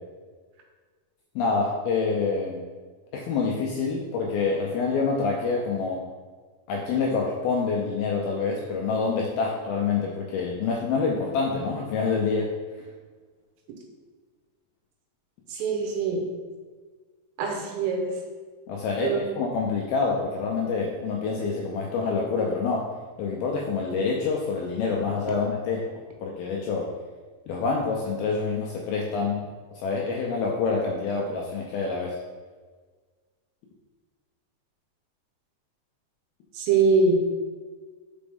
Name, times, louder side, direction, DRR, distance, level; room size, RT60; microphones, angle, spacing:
voice 1, 1.4-2.6 3.1-6.0 6.7-12.5 18.7-22.9 23.2-25.9 26.2-26.9 27.5-29.4 29.7-32.2, left 4 dB, 90° left, -2 dB, 2.1 m, -27 dB
voice 2, 15.5-16.3 17.4-18.1 19.0-19.2 36.5-37.3, right 4 dB, 80° right, 2 dB, 3.0 m, -23 dB
6.0 x 5.2 x 3.5 m, 1.5 s
omnidirectional pair, 5.1 m